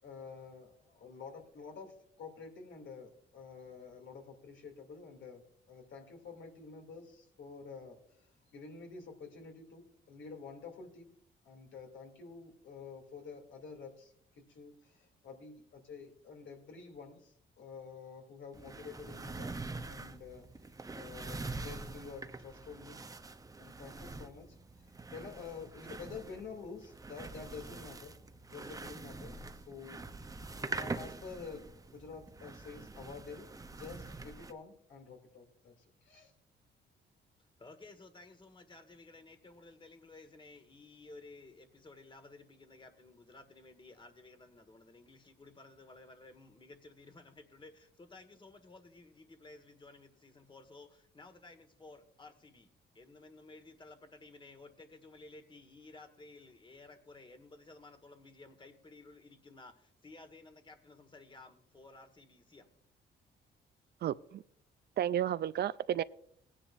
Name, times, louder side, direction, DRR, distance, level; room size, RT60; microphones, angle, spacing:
voice 1, 0.0-5.4 5.7-11.1 11.4-19.6 19.9-20.5 20.9-23.0 23.6-28.1 28.5-33.5 33.8-36.3, left 5 dB, 70° left, 2.6 m, -49 dB
sound 1, 18.5-34.5, right 3 dB, 15° right, 0.7 m, -45 dB
voice 2, 37.4-62.7, left 3 dB, 25° left, 1.5 m, -55 dB
voice 3, 64.0-64.4 65.0-66.0, right 11 dB, 55° right, 0.4 m, -32 dB
18.5 x 10.0 x 2.5 m
cardioid pair, 90°, 20 cm